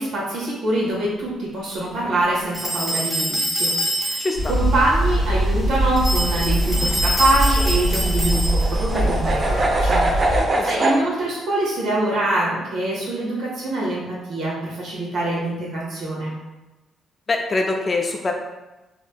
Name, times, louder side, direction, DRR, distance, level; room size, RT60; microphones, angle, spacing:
voice 1, 0.0-16.3, right 1 dB, 70° right, -6 dB, 1.2 m, -24 dB
sound 1, 2.5-4.5 6.0-8.8, right 1 dB, 15° left, 1.2 m, -25 dB
voice 2, 4.2-4.5 10.4-10.9 17.3-18.3, left 3 dB, 35° left, 2 dB, 0.4 m, -24 dB
sound 2, 4.3-10.4, right 1 dB, 55° right, 1.1 m, -22 dB
sound 3, 6.2-11.0, right 2 dB, 40° right, 0.5 m, -24 dB
3.2 x 2.9 x 2.2 m, 1.1 s
cardioid pair, 90°, 0 cm